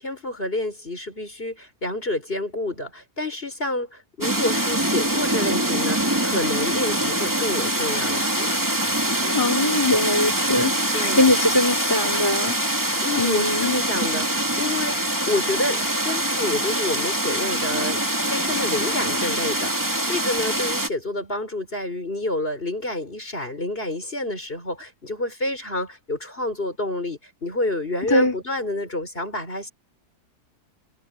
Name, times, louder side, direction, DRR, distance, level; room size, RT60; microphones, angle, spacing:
voice 1, 0.0-8.6 10.9-11.4 13.0-29.7, left 2 dB, 35° left, 5.6 m, -29 dB
sound 1, 4.2-20.9, right 1 dB, 10° right, 2.4 m, -24 dB
voice 2, 9.2-13.8 28.1-28.3, left 1 dB, 15° left, 3.4 m, -22 dB
omnidirectional pair, 1.7 m